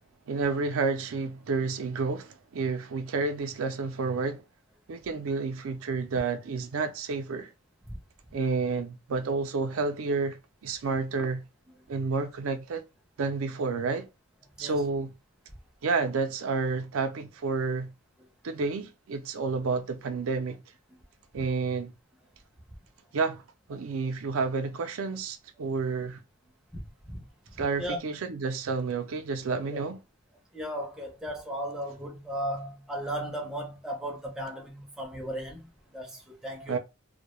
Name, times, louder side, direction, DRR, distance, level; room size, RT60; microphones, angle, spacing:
voice 1, 0.3-4.4 4.9-7.5 8.3-11.4 11.9-12.9 13.2-14.1 14.6-15.1 15.8-17.9 18.4-20.6 21.3-21.9 23.1-23.4 23.7-26.2 27.6-30.0 36.7-36.8, right 4 dB, 85° right, 0.4 m, -30 dB
voice 2, 26.7-27.2 27.8-28.0 29.7-29.8 30.5-36.8, equal, 5° right, 0.5 m, -36 dB
2.2 x 2.1 x 2.9 m
head